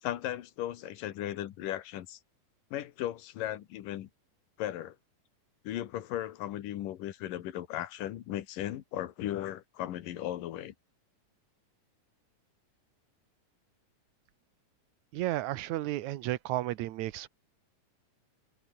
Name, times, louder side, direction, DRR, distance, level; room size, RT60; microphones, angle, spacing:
voice 1, 0.0-2.2 2.7-4.1 4.6-5.0 5.6-10.7, left 12 dB, 90° left, 3.0 m, -36 dB
voice 2, 15.1-17.3, right 15 dB, 70° right, 2.1 m, -33 dB
omnidirectional pair, 3.7 m